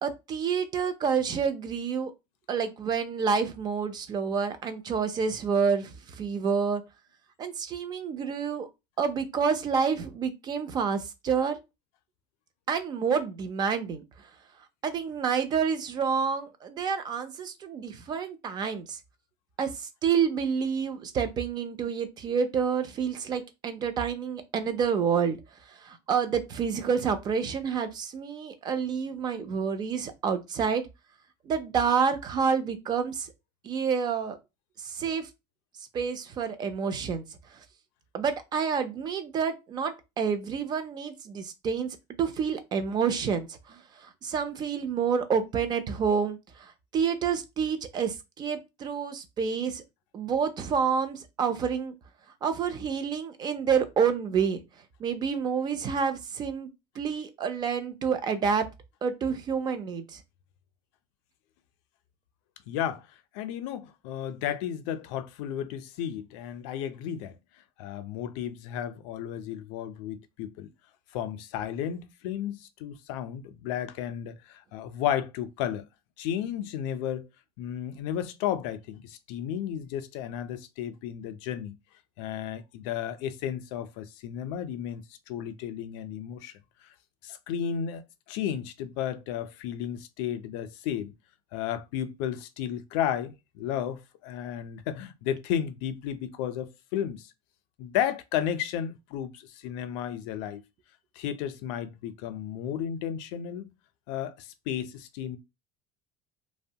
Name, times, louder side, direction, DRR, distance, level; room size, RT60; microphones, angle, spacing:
voice 1, 0.0-2.1 2.5-6.8 7.4-8.7 9.0-11.6 12.7-14.0 14.8-19.0 19.6-19.7 20.0-25.4 25.8-30.9 31.5-33.3 33.6-34.4 34.8-35.3 35.9-37.3 38.1-49.8 50.1-51.9 52.4-54.6 55.0-56.7 57.0-58.7 59.0-60.2, right 6 dB, 30° right, 0.4 m, -28 dB
voice 2, 62.7-63.1 63.3-67.4 67.8-70.7 71.1-75.8 76.2-77.3 77.6-81.7 82.2-86.5 87.2-91.1 91.5-97.3 97.8-100.6 101.2-103.7 104.1-105.4, left 10 dB, 85° left, 0.4 m, -33 dB
2.8 x 2.1 x 2.7 m
cardioid pair, 160°, 15 cm